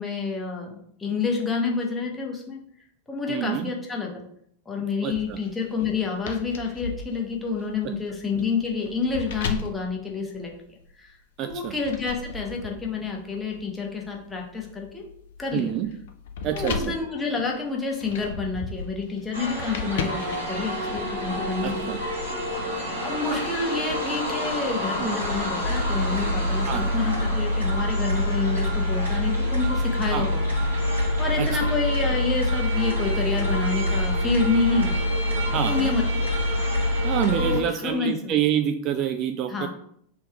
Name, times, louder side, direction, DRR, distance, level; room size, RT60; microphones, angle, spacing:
voice 1, 0.0-2.6 3.1-4.2 4.7-10.5 11.0-11.1 11.4-15.0 15.4-15.7 16.5-21.8 23.0-30.5 31.2-35.0 35.5-36.3 37.3-38.3 39.5-39.7, left 4 dB, 10° left, -1 dB, 1.1 m, -28 dB
voice 2, 3.3-3.7 5.0-5.4 11.4-11.7 15.5-15.9 16.4-16.9 21.6-22.0 25.0-25.2 26.7-26.9 30.1-30.3 31.4-31.7 35.5-35.9 37.0-39.7, right 10 dB, 35° right, 7 dB, 0.3 m, -27 dB
sound 1, 5.1-10.9 11.5-21.0, left 5 dB, 55° left, 0.5 m, -37 dB
sound 2, 19.3-37.6, left 1 dB, 80° right, 1.7 m, -26 dB
3.4 x 3.0 x 4.7 m, 0.68 s
figure-of-eight pair, 90°, 0 cm